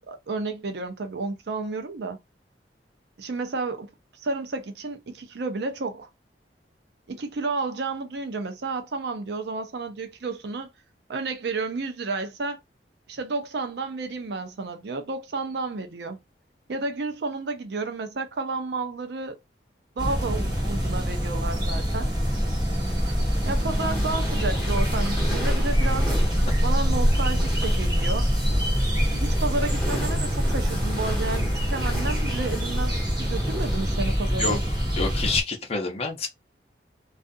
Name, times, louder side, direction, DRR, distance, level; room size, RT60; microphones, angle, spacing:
voice 1, 0.1-2.2 3.2-3.9 4.2-6.1 7.1-10.7 11.1-12.6 13.1-16.2 16.7-19.4 20.0-22.1 23.4-26.2 26.6-28.3 29.1-32.9 33.2-34.6, right 3 dB, 65° right, 0.5 m, -31 dB
sound 1, 20.0-35.4, equal, 25° right, 1.1 m, -25 dB
sound 2, 22.9-34.1, equal, 5° left, 1.2 m, -35 dB
voice 2, 34.9-36.3, left 4 dB, 35° left, 0.7 m, -27 dB
2.4 x 2.3 x 2.6 m
head